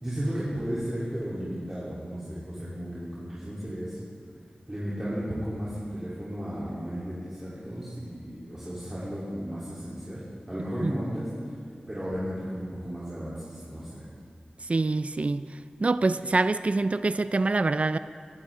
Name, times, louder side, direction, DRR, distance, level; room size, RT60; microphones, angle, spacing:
voice 1, 0.0-4.0 4.7-11.5 11.9-14.1, equal, 20° right, -10 dB, 3.5 m, -34 dB
voice 2, 14.7-15.5 15.8-18.0, right 3 dB, 45° right, 13 dB, 0.4 m, -25 dB
22.5 x 11.5 x 3.8 m, 2.2 s
wide cardioid pair, 80°, 3 cm